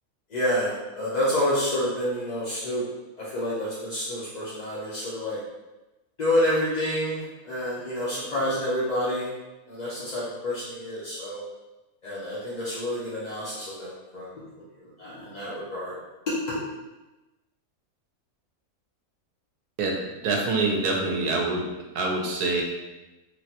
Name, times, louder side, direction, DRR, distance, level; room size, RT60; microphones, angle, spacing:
voice 1, 0.3-2.8 3.2-5.4 6.2-9.3 9.7-11.4 12.0-14.3 14.7-15.9 16.3-16.6, left 1 dB, 55° left, -9 dB, 0.4 m, -28 dB
voice 2, 19.8-21.7 21.9-22.6, right 3 dB, 85° right, 0 dB, 1.1 m, -25 dB
3.6 x 2.1 x 2.8 m, 1.1 s
omnidirectional pair, 1.6 m